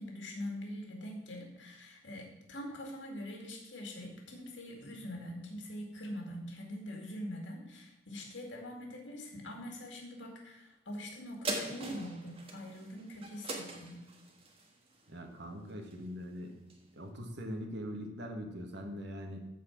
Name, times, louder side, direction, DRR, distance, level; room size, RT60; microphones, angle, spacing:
voice 1, 0.0-14.0, left 1 dB, 70° left, 1 dB, 2.3 m, -43 dB
sound 1, 11.4-16.2 16.7-16.8, right 2 dB, 30° right, 1.5 m, -42 dB
voice 2, 15.1-16.5 16.9-19.5, equal, 65° right, 3 dB, 1.7 m, -42 dB
13.5 x 4.7 x 6.0 m, 0.90 s
head